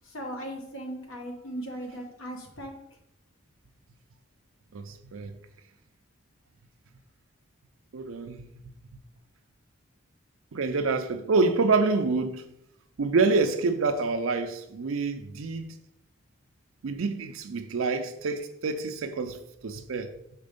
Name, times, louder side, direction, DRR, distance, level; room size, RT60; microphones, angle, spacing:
voice 1, 0.1-2.7, right 1 dB, 80° left, 1.3 m, -37 dB
voice 2, 4.7-5.3 7.9-8.5 10.5-12.4 13.0-15.7 16.8-20.1, right 3 dB, 75° right, 0.5 m, -27 dB
5.2 x 4.2 x 5.2 m
head